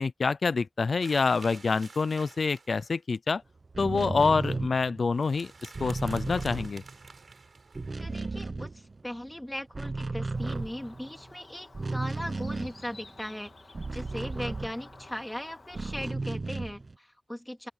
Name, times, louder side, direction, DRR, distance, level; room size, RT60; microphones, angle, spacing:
voice 1, 0.0-3.4 3.8-6.8, left 4 dB, 80° left, 0.5 m, -27 dB
sound 1, 1.0-3.0 5.1-8.4, right 4 dB, 80° right, 5.4 m, -51 dB
sound 2, 3.6-7.3 7.6-9.3 9.6-15.2 15.7-16.9, right 3 dB, 55° right, 0.7 m, -35 dB
voice 2, 8.0-13.5 13.9-17.7, left 1 dB, 10° left, 3.2 m, -38 dB
Bird, 10.3-16.1, left 3 dB, 65° left, 1.8 m, -53 dB
open air
wide cardioid pair, 65°, 0 cm